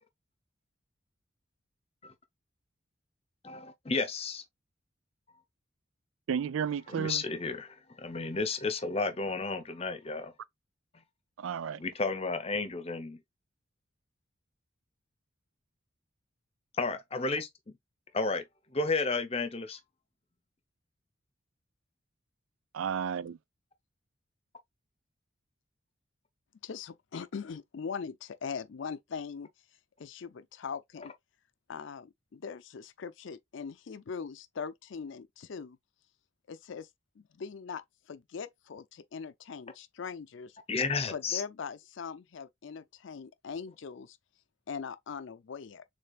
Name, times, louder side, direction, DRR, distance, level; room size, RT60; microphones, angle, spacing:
voice 1, 3.4-4.4 6.9-10.3 11.8-13.2 16.8-17.7 18.1-18.4 18.7-19.8 40.7-41.4, left 3 dB, 30° left, 0.7 m, -32 dB
voice 2, 6.3-7.2 11.4-11.8 22.7-23.4, right 7 dB, 80° right, 0.3 m, -32 dB
voice 3, 26.6-29.5 30.0-31.1 31.7-35.8 36.5-36.9 37.2-37.8 38.1-40.6 41.1-44.2 44.7-45.8, left 6 dB, 70° left, 0.4 m, -41 dB
6.6 x 3.4 x 2.4 m
head